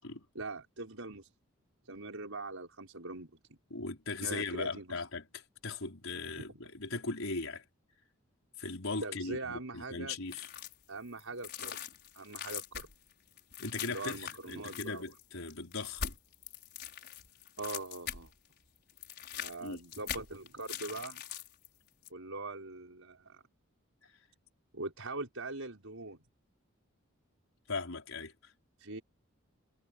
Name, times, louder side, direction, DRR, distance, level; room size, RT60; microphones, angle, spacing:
voice 1, 0.4-1.3 1.9-3.3 4.2-5.0 9.0-10.2 10.9-11.8 12.1-12.9 13.9-15.0 17.6-18.3 19.4-21.2 22.1-23.4 24.7-26.2 28.8-29.0, right 2 dB, 80° right, 5.2 m, -42 dB
voice 2, 3.7-7.6 8.6-10.5 13.6-16.2 19.6-19.8 27.7-28.3, left 3 dB, 80° left, 4.8 m, -39 dB
sound 1, 10.3-10.8 11.2-18.5 18.8-21.7 22.0-22.1, left 8 dB, 50° left, 5.8 m, -43 dB
head